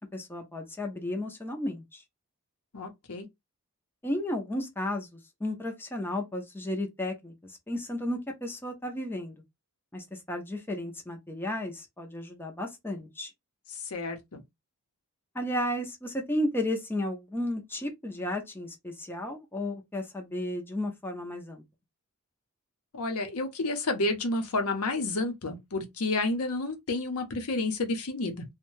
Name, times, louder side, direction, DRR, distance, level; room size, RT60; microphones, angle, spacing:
voice 1, 0.1-2.0 4.0-9.4 9.9-13.3 15.3-21.6, left 1 dB, 10° left, 0.5 m, -33 dB
voice 2, 2.7-3.3 13.7-14.4 22.9-28.4, left 2 dB, 75° left, 0.7 m, -30 dB
2.6 x 2.1 x 3.1 m
head